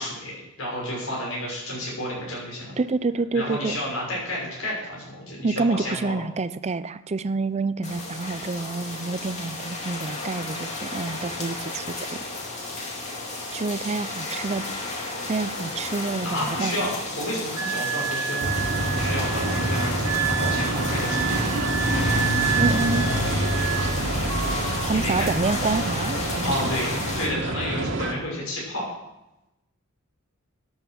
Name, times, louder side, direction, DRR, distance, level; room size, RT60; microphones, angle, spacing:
voice 1, 0.0-2.7 3.3-6.2 16.2-18.4 18.9-21.2 24.9-25.3 26.4-28.9, left 1 dB, 70° left, -4 dB, 6.2 m, -31 dB
voice 2, 2.8-3.8 5.4-12.2 13.5-14.7 15.3-16.9 22.6-23.4 24.8-26.8, right 3 dB, 30° right, 14 dB, 0.5 m, -28 dB
sound 1, 7.8-27.3, left 2 dB, 35° left, 2.5 m, -33 dB
Wind instrument woodwind instrument, 17.6-24.0 24.3-24.9, right 8 dB, 90° right, 1.7 m, -29 dB
sound 2, 18.4-28.1, right 1 dB, 60° right, 1.5 m, -27 dB
13.5 x 8.8 x 6.2 m, 0.93 s
head